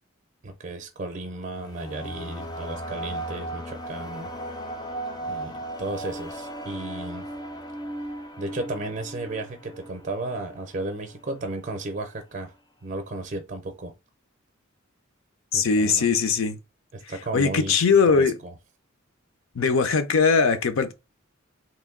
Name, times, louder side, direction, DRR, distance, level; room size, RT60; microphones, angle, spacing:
voice 1, 0.4-4.3 5.3-7.3 8.4-12.5 12.8-13.9 15.5-16.1 16.9-17.8 18.1-18.5, right 2 dB, 40° right, 0.5 m, -34 dB
sound 1, 1.1-11.3, right 1 dB, 20° left, 0.4 m, -37 dB
voice 2, 15.5-16.6 17.3-18.3 19.6-20.9, left 5 dB, 75° left, 0.5 m, -20 dB
3.0 x 2.5 x 3.6 m
head